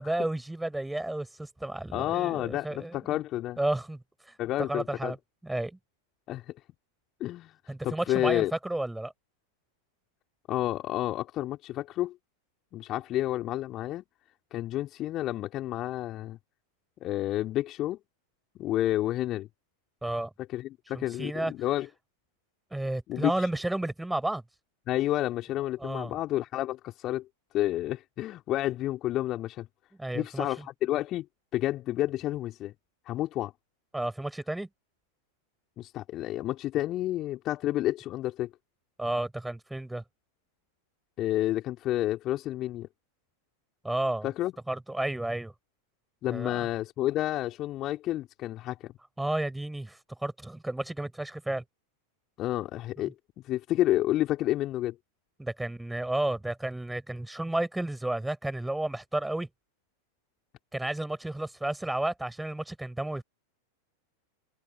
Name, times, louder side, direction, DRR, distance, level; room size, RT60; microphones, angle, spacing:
voice 1, 0.0-2.9 3.6-4.0 4.3-4.4 4.7-5.2 5.4-5.8 7.7-9.1 20.0-20.3 20.9-21.5 22.7-24.4 25.8-26.1 30.0-30.5 33.9-34.7 39.0-40.0 43.8-44.3 44.7-45.5 46.3-46.7 49.2-51.6 55.4-59.5 60.7-63.2, right 1 dB, 5° right, 5.8 m, -32 dB
voice 2, 1.9-3.6 4.4-5.1 6.3-6.5 7.2-7.6 7.8-8.5 10.5-12.2 12.7-14.0 14.5-16.4 17.0-18.0 18.6-19.5 20.5-21.9 23.1-23.5 24.9-27.3 27.5-29.7 30.1-31.3 31.5-32.7 33.1-33.5 35.8-38.5 41.2-42.9 44.2-44.5 46.2-48.9 52.4-53.1 53.4-55.0, left 14 dB, 35° left, 3.6 m, -30 dB
figure-of-eight pair, 90°, 0 cm